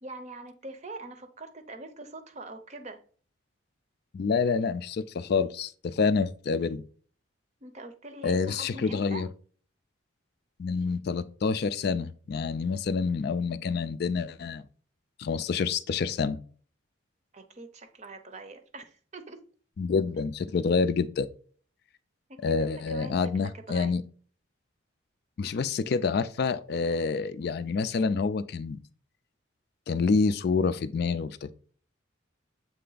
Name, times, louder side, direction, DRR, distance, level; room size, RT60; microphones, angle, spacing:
voice 1, 0.0-3.0 7.6-9.2 17.3-19.4 22.3-23.9, right 2 dB, 35° right, 0.6 m, -43 dB
voice 2, 4.1-6.8 8.2-9.3 10.6-14.6 15.2-16.4 19.8-21.3 22.4-24.0 25.4-28.8 29.9-31.5, left 5 dB, 50° left, 0.3 m, -27 dB
7.6 x 3.3 x 3.9 m
head